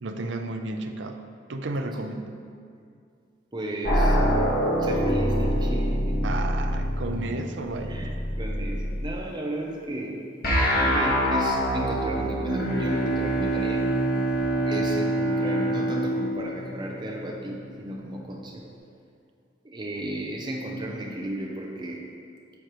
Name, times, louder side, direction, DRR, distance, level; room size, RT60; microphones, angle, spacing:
voice 1, 0.0-1.2 1.5-2.3 6.2-8.1, right 2 dB, 75° right, 6 dB, 0.5 m, -32 dB
voice 2, 3.5-4.2 4.8-6.3 7.9-10.2 10.7-13.9 14.6-18.6 19.6-22.1, right 1 dB, 25° right, -1 dB, 0.6 m, -34 dB
sound 1, 3.8-9.2 10.4-14.4, equal, 55° left, 1.5 m, -25 dB
Bowed string instrument, 12.4-17.6, right 2 dB, 80° left, 1.6 m, -27 dB
9.6 x 6.3 x 3.0 m, 2.4 s
head